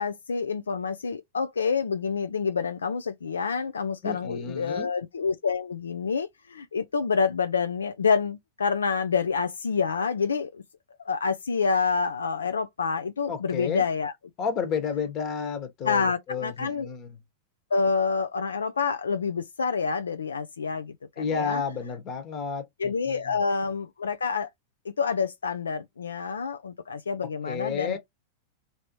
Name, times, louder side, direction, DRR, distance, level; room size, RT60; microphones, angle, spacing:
voice 1, 0.0-10.6 11.1-14.1 15.8-16.9 17.7-21.6 22.8-24.5 25.0-28.0, left 5 dB, 90° left, 0.3 m, -27 dB
voice 2, 4.0-4.9 13.3-13.9 14.4-17.2 21.2-23.3 27.5-28.0, left 6 dB, 40° left, 1.1 m, -31 dB
3.1 x 2.7 x 2.9 m
hypercardioid pair, 105°, 0 cm